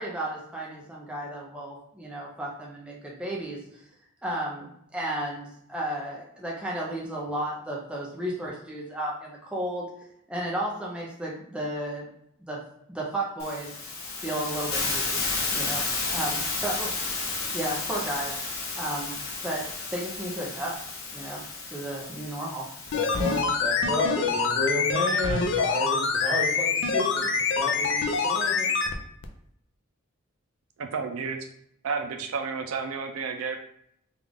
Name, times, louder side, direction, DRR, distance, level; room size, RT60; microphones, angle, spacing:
voice 1, 0.0-3.6 4.2-4.7 4.9-9.9 10.3-12.0 12.4-12.6 12.9-13.8 14.2-15.8 16.1-18.3 18.8-19.1 19.4-19.7 19.9-20.8 21.1-21.4 21.7-22.6, right 1 dB, 5° right, -4 dB, 0.5 m, -33 dB
Hiss, 13.4-23.4, left 3 dB, 85° left, 0.9 m, -32 dB
sound 1, 22.9-29.0 29.2-29.3, left 5 dB, 60° left, 0.4 m, -25 dB
voice 2, 22.9-28.7, left 1 dB, 20° right, -4 dB, 1.0 m, -32 dB
voice 3, 30.8-31.5 31.8-33.6, right 5 dB, 85° right, 5 dB, 0.5 m, -31 dB
3.5 x 2.4 x 3.5 m, 0.71 s
head